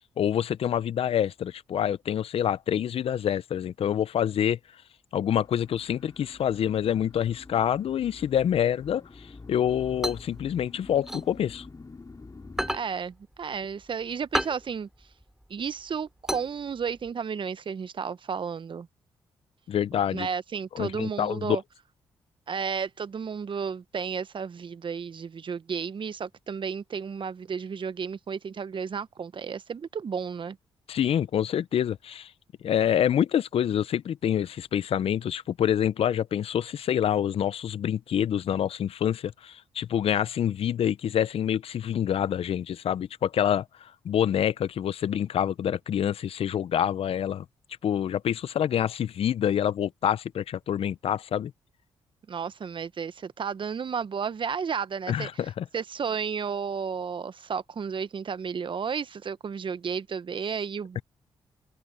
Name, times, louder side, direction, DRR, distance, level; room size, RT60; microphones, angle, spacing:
voice 1, 0.2-4.6 5.1-9.0 9.5-11.7 19.7-20.3 20.7-21.6 30.9-32.3 32.6-47.4 47.8-51.5 55.1-55.6, left 9 dB, 65° left, 0.8 m, -26 dB
sound 1, 5.3-12.8, left 3 dB, 35° left, 6.0 m, -47 dB
sound 2, 9.6-12.1 12.4-17.1, equal, 5° right, 2.9 m, -33 dB
voice 2, 12.7-14.9 15.5-18.9 20.1-21.6 22.5-30.6 52.3-55.4 55.7-61.0, right 6 dB, 50° right, 1.2 m, -32 dB
open air
hypercardioid pair, 45°, 11 cm